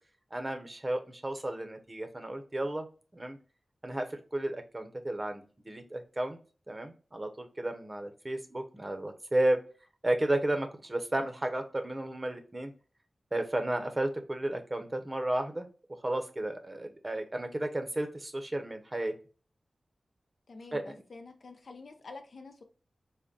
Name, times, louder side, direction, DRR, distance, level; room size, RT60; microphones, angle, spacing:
voice 1, 0.3-2.9 3.1-3.4 3.8-6.4 6.7-9.6 10.0-12.7 13.3-15.7 16.0-19.1 20.7-20.9, right 1 dB, 30° right, 0.6 m, -33 dB
voice 2, 20.5-22.6, left 3 dB, 75° left, 0.4 m, -48 dB
3.6 x 2.1 x 3.8 m
cardioid pair, 55°, 0 cm